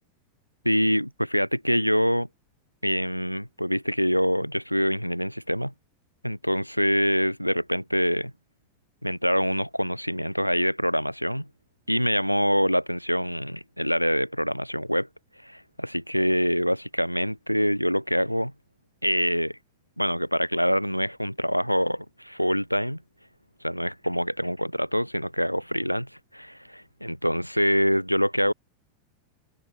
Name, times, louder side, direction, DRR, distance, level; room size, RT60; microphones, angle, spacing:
voice 1, 0.6-2.3 2.8-5.7 6.2-8.3 9.0-11.5 11.9-15.1 15.4-18.5 19.0-19.6 20.0-23.0 23.6-28.5, equal, 90° left, 0.3 m, -25 dB
figure-of-eight pair, 90°, 0 cm